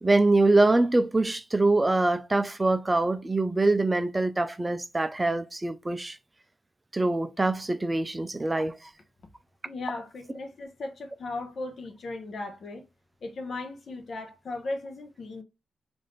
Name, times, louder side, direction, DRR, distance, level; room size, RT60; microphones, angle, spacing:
voice 1, 0.0-6.2 6.9-8.9, right 2 dB, 20° right, 0.4 m, -24 dB
voice 2, 9.6-12.8 13.2-15.4, left 2 dB, 50° left, 0.8 m, -37 dB
3.4 x 2.6 x 3.8 m
cardioid pair, 95°, 0 cm